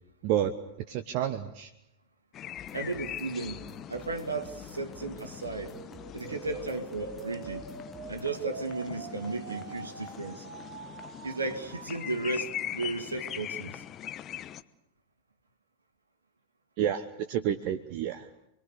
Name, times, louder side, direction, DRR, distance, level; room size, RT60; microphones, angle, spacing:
voice 1, 0.2-0.5 0.9-1.7 16.8-18.3, right 10 dB, 45° right, 9 dB, 1.2 m, -29 dB
sound 1, 2.3-14.6, left 11 dB, 30° left, 1.0 m, -42 dB
sound 2, 2.6-8.2, left 3 dB, ahead, 2.1 m, -51 dB
voice 2, 2.7-5.7 6.1-7.7 8.1-10.5 11.2-13.8, right 3 dB, 75° right, 5 dB, 2.3 m, -35 dB
sound 3, 5.4-12.4, right 6 dB, 60° right, 1.7 m, -45 dB
28.5 x 22.5 x 6.8 m, 0.82 s
figure-of-eight pair, 90°, 0 cm